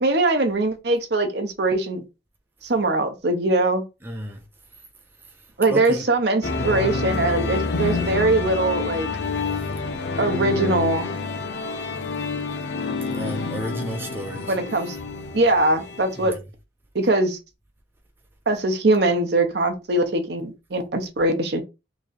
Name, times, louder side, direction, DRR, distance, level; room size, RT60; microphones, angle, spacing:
voice 1, 0.0-2.0 2.6-3.8 5.6-9.1 10.2-11.1 14.5-15.0 15.3-16.3 16.9-17.4 18.5-21.6, right 2 dB, 60° right, 0.7 m, -21 dB
voice 2, 4.0-4.4 5.3-5.4 5.7-6.0 9.5-9.7 13.1-14.6 16.2-16.4, right 1 dB, 10° right, 0.5 m, -33 dB
sound 1, 6.4-16.4, left 3 dB, 65° left, 0.6 m, -28 dB
3.1 x 2.6 x 3.9 m
head